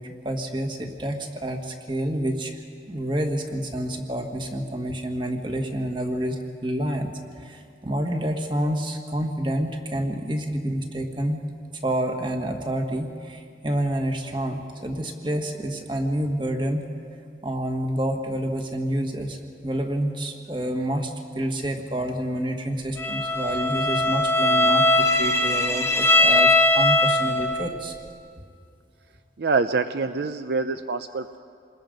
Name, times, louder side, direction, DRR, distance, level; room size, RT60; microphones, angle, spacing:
voice 1, 0.0-2.6 2.9-7.1 7.3-11.4 11.7-16.8 17.4-27.9, right 1 dB, 25° right, 3 dB, 1.7 m, -28 dB
Bowed string instrument, 23.0-27.7, left 1 dB, 15° left, 1.2 m, -20 dB
voice 2, 29.4-31.4, right 4 dB, 65° right, 9 dB, 0.5 m, -25 dB
27.5 x 21.0 x 5.3 m, 2.3 s
head